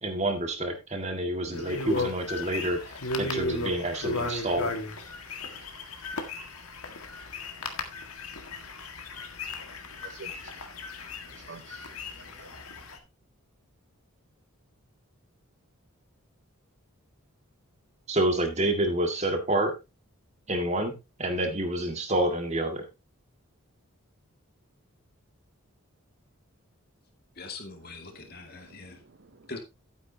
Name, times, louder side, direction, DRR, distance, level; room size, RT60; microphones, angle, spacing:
voice 1, 0.0-2.8 3.2-4.7 18.1-19.7 20.5-22.8, right 1 dB, 30° right, 1.9 m, -28 dB
sound 1, 1.5-13.0, left 2 dB, 80° left, 1.8 m, -35 dB
voice 2, 10.0-10.7 11.3-12.5 28.6-29.3, right 4 dB, 55° right, 0.6 m, -49 dB
voice 3, 27.4-29.0 29.5-29.6, left 3 dB, 45° left, 2.3 m, -42 dB
12.0 x 9.3 x 2.9 m
head